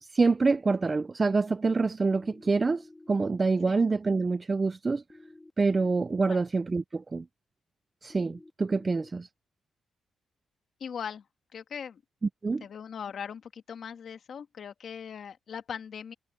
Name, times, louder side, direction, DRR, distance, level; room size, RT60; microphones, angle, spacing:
voice 1, 0.0-5.0 5.6-7.3 8.0-9.3 12.4-12.6, right 4 dB, 30° right, 0.5 m, -26 dB
sound 1, 2.1-3.1 5.1-6.1 8.1-9.1, left 2 dB, 15° left, 1.8 m, -52 dB
voice 2, 10.8-11.2 11.5-12.0 12.6-16.1, left 7 dB, 60° left, 1.6 m, -40 dB
cardioid pair, 105°, 0 cm